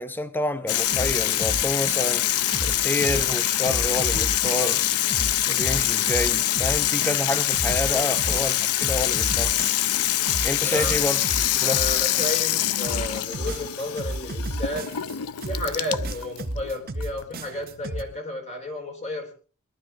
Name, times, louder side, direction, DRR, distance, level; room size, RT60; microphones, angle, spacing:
voice 1, 0.0-2.3 2.6-4.9 5.5-9.6 10.4-11.3 11.6-11.8, left 1 dB, 10° left, 0.8 m, -28 dB
Water tap faucet / Sink (filling or washing), 0.7-18.2, left 13 dB, 85° left, 0.6 m, -25 dB
sound 1, 0.9-2.2 2.5-4.8 5.1-10.0 10.2-12.6 12.8-15.1 15.4-18.0, right 1 dB, 45° right, 1.3 m, -32 dB
voice 2, 7.9-8.2 10.6-11.0 11.6-19.3, left 1 dB, 30° left, 4.3 m, -33 dB
21.5 x 12.5 x 3.7 m
head